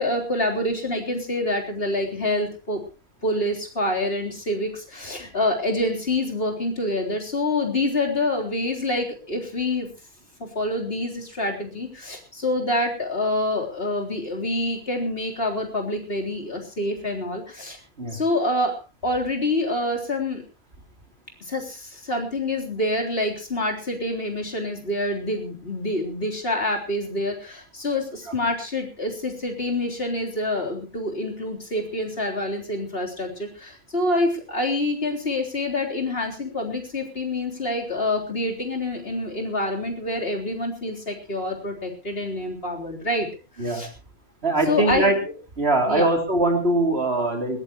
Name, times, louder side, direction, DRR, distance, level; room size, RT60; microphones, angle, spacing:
voice 1, 0.0-2.8 3.2-9.9 10.4-17.8 18.1-20.4 21.5-43.3 43.6-43.9 44.7-45.1 45.9-46.1, left 1 dB, 45° left, 1 dB, 4.0 m, -26 dB
voice 2, 44.4-45.2 45.6-47.6, right 2 dB, 50° right, 3 dB, 3.4 m, -22 dB
20.5 x 18.0 x 3.0 m, 0.32 s
omnidirectional pair, 1.4 m